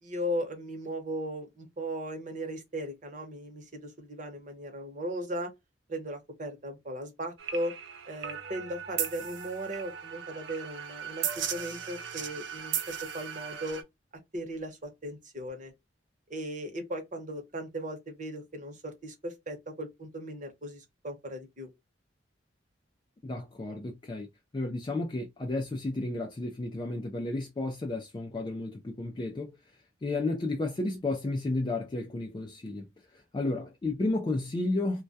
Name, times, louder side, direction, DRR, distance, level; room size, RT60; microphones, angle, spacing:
voice 1, 0.0-5.5 5.9-7.7 8.0-13.8 14.3-15.7 16.3-21.7, equal, 40° right, 0.8 m, -37 dB
sound 1, 7.4-13.8, right 8 dB, 75° right, 0.5 m, -37 dB
voice 2, 23.2-24.3 24.5-29.6 30.0-32.9 33.1-35.0, left 2 dB, 25° left, 0.3 m, -32 dB
2.2 x 2.1 x 2.6 m
head